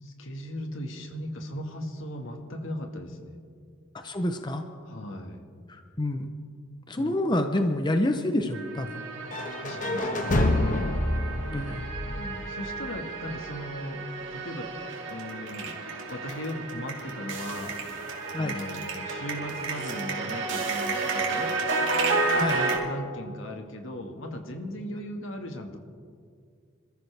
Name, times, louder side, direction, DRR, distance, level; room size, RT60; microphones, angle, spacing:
voice 1, 0.0-3.4 4.8-5.5 7.0-7.2 9.5-10.8 12.1-14.0 14.3-14.7 15.1-15.8 16.1-17.7 18.4-21.5 22.5-25.8, equal, 75° left, 4 dB, 1.7 m, -38 dB
voice 2, 3.9-4.6 5.7-6.3 6.9-9.0 11.5-11.9 18.3-18.6 22.4-22.6, left 1 dB, 20° left, 6 dB, 0.7 m, -28 dB
sound 1, 8.5-22.8, right 3 dB, 65° right, 2.5 m, -32 dB
sound 2, 9.3-13.2, left 1 dB, 40° left, 1.2 m, -28 dB
27.0 x 14.0 x 3.4 m, 2.1 s
head